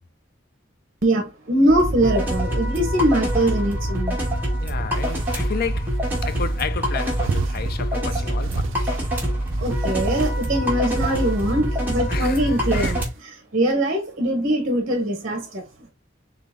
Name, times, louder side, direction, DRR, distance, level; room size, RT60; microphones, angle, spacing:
voice 1, 1.0-4.2 8.8-8.9 9.6-15.6, right 1 dB, 45° right, 1.0 m, -22 dB
sound 1, 1.7-13.1, equal, 10° right, 1.6 m, -25 dB
voice 2, 4.6-5.9 6.2-8.9 12.1-13.0, left 6 dB, 50° left, 0.5 m, -32 dB
sound 2, 4.9-5.5 6.0-6.6 7.2-7.8 8.4-9.1 9.5-10.4 10.9-11.6 12.6-13.1, right 5 dB, 65° right, 0.4 m, -33 dB
3.9 x 3.6 x 3.5 m
head